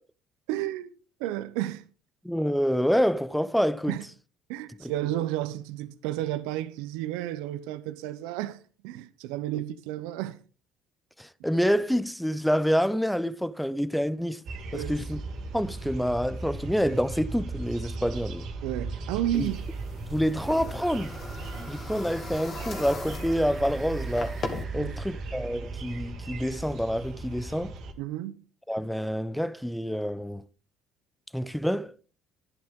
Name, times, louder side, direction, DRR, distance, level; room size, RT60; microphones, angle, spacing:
voice 1, 0.5-0.9 1.2-1.8 3.9-4.1 4.5-8.6 8.8-10.4 14.7-14.9 18.6-19.6 24.7-24.9 28.0-28.4, right 13 dB, 80° right, 0.8 m, -32 dB
voice 2, 2.2-4.0 4.8-4.9 11.2-14.4 14.7-15.2 15.5-18.5 19.3-19.5 20.1-21.2 21.7-24.4 24.7-27.7 28.7-30.4 31.3-31.9, equal, ahead, 0.7 m, -27 dB
sound 1, 14.4-27.9, right 3 dB, 65° right, 2.1 m, -37 dB
sound 2, 19.3-24.6, left 3 dB, 45° left, 2.4 m, -40 dB
sound 3, 20.7-25.8, right 4 dB, 25° right, 1.4 m, -49 dB
11.5 x 10.5 x 3.8 m
hypercardioid pair, 70°, 0 cm